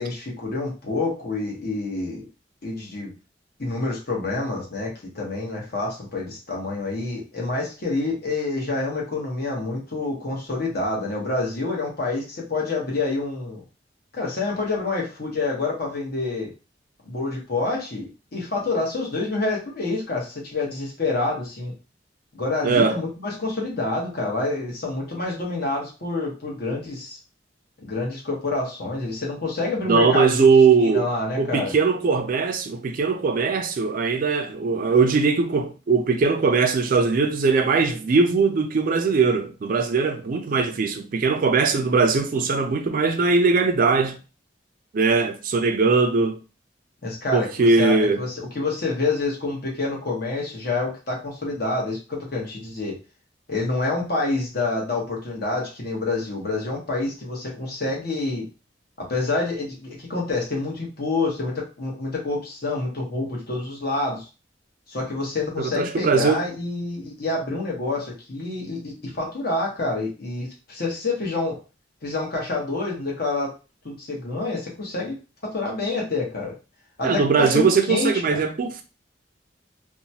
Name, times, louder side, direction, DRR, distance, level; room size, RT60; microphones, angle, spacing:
voice 1, 0.0-2.2 2.6-3.1 3.6-13.6 14.1-16.5 17.0-21.7 22.3-27.2 27.8-30.5 30.8-31.7 47.0-52.9 53.5-58.4 59.0-64.2 64.9-71.6 72.0-73.5 73.8-75.2 75.4-76.5 77.0-78.4, left 3 dB, 55° left, 1.1 m, -27 dB
voice 2, 22.6-23.0 29.9-31.1 31.4-44.2 44.9-46.4 47.3-48.2 65.6-66.4 77.0-78.8, right 4 dB, 50° right, 0.4 m, -20 dB
2.8 x 2.2 x 2.8 m
head